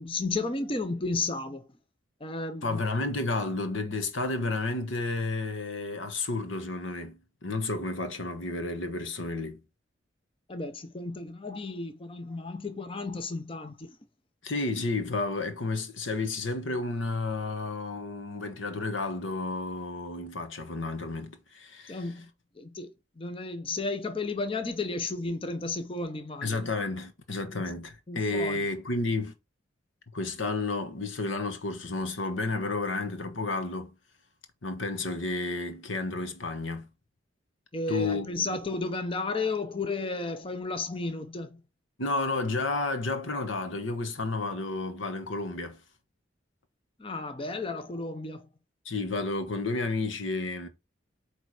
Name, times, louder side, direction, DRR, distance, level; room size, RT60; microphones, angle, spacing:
voice 1, 0.0-1.6 2.2-2.8 10.5-13.9 21.9-22.3 22.6-22.9 23.2-26.6 27.5-27.7 28.1-28.6 37.7-41.6 47.0-48.5, left 3 dB, 25° left, 0.7 m, -33 dB
voice 2, 2.6-9.6 14.4-22.1 26.4-29.3 30.1-33.9 34.6-36.9 37.9-38.4 42.0-45.8 48.8-50.7, left 3 dB, 80° left, 1.3 m, -31 dB
8.5 x 3.4 x 4.9 m
head